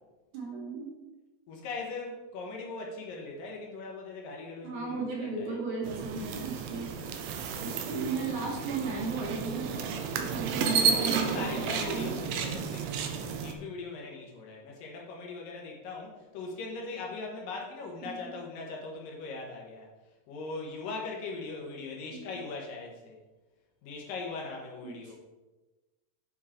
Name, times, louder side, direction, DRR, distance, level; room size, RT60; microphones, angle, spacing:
voice 1, 0.3-0.9 4.6-6.9 7.6-9.9 10.2-12.2 18.0-18.3 22.1-22.3 24.8-25.2, right 4 dB, 60° right, -3 dB, 2.7 m, -36 dB
voice 2, 1.5-5.5 6.9-7.1 7.5-7.7 10.4-19.9 20.3-23.2 23.8-25.2, left 3 dB, 70° left, -1 dB, 2.7 m, -40 dB
sound 1, 5.8-13.5, right 6 dB, 80° right, 2.3 m, -32 dB
8.6 x 4.6 x 4.3 m, 1.1 s
omnidirectional pair, 4.2 m